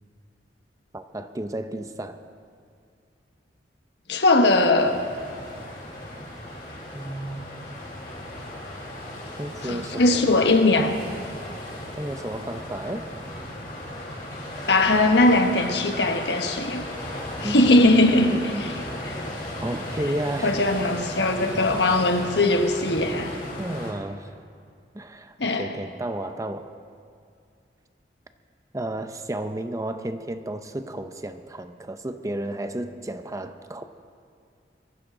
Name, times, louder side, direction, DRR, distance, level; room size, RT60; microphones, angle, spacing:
voice 1, 0.9-2.2 6.9-7.8 9.4-10.5 12.0-13.1 17.4-18.7 19.6-20.6 23.6-24.3 24.9-26.7 28.7-33.8, right 1 dB, 20° right, 8 dB, 0.6 m, -32 dB
voice 2, 4.1-5.0 9.6-10.9 14.7-16.9 17.4-18.3 19.1-19.2 20.4-23.4 25.4-25.7, left 2 dB, 70° left, 5 dB, 1.3 m, -20 dB
sound 1, 4.8-23.9, left 1 dB, 50° left, 4.7 m, -36 dB
23.0 x 15.0 x 3.8 m, 2.3 s
head